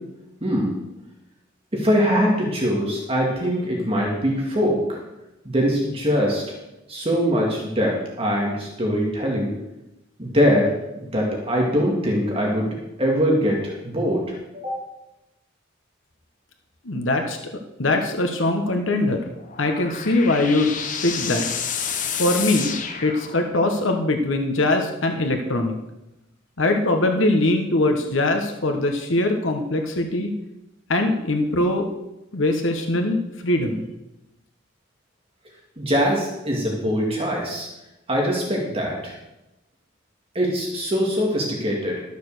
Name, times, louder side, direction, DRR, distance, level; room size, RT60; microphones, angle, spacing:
voice 1, 0.4-0.7 1.7-5.0 5.5-6.4 6.9-9.5 10.2-10.7 11.1-12.7 13.0-14.8 35.8-37.7 38.1-39.1 40.3-42.0, equal, 30° right, -2 dB, 2.1 m, -22 dB
voice 2, 16.8-17.5 17.8-19.3 19.6-20.7 21.0-21.5 22.2-25.7 26.6-30.3 30.9-31.9 32.3-33.8, left 2 dB, 70° left, 4 dB, 1.2 m, -22 dB
sound 1, 19.3-23.8, left 7 dB, 40° left, 1.0 m, -30 dB
13.0 x 6.8 x 6.6 m, 0.94 s
head